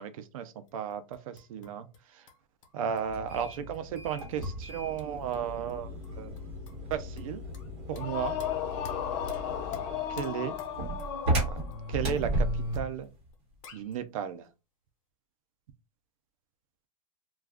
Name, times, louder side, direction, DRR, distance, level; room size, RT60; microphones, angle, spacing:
voice 1, 0.0-2.3 2.7-6.3 6.9-7.4 7.9-8.4 10.1-10.5 11.5-11.6 11.9-13.1 13.7-14.5, right 8 dB, 75° right, 0.5 m, -34 dB
sound 1, 0.7-2.0 2.3-5.4 5.7-5.8 6.0-7.7 8.0-11.8 12.0-12.1 12.4-12.5 13.0-13.1 13.3-13.4 13.6-14.0, left 4 dB, 65° left, 0.9 m, -51 dB
sound 2, 3.1-13.0, right 1 dB, 35° right, 1.1 m, -35 dB
sound 3, 7.9-11.9, left 9 dB, 40° left, 0.5 m, -35 dB
2.3 x 2.3 x 3.4 m
supercardioid pair, 160°, 18 cm